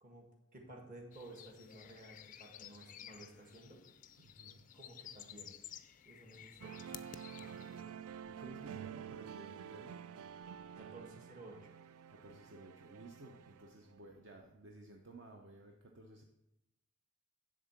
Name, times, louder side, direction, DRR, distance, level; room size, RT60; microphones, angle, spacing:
voice 1, 0.0-3.8 4.7-5.5 6.0-6.8 10.8-11.7, right 2 dB, 35° right, 2 dB, 1.6 m, -54 dB
sound 1, 1.1-7.8, left 10 dB, 35° left, 0.3 m, -54 dB
voice 2, 4.2-4.7 7.3-10.0 12.1-16.2, right 2 dB, 55° right, 1 dB, 0.8 m, -55 dB
sound 2, 6.6-14.1, right 8 dB, 80° right, 0.3 m, -49 dB
11.0 x 3.7 x 7.2 m, 0.87 s
head